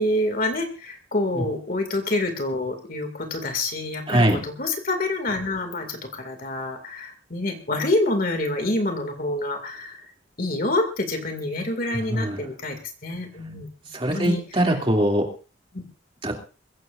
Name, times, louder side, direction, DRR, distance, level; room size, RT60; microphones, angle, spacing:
voice 1, 0.0-10.1 10.4-13.7 14.1-14.6 15.7-15.8, left 2 dB, 45° left, 5 dB, 2.4 m, -27 dB
voice 2, 4.1-4.4 12.1-12.4 13.9-15.3 16.2-16.3, right 1 dB, 25° right, 1 dB, 2.7 m, -22 dB
22.5 x 16.0 x 2.6 m, 0.35 s
head